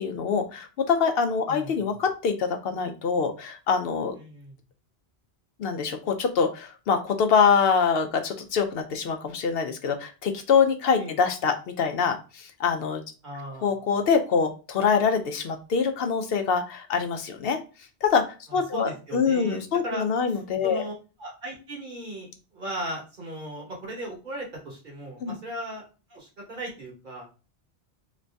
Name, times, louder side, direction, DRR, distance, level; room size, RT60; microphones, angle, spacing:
voice 1, 0.0-4.2 5.6-13.0 13.6-17.6 18.0-18.3 18.5-20.8 25.2-25.3, left 6 dB, 70° left, 6 dB, 0.7 m, -24 dB
voice 2, 1.5-2.0 4.2-4.6 11.0-11.2 13.2-13.9 18.5-20.9 21.2-25.8 26.1-27.3, right 1 dB, 50° right, -1 dB, 1.3 m, -37 dB
3.0 x 2.6 x 3.3 m, 0.33 s
omnidirectional pair, 1.1 m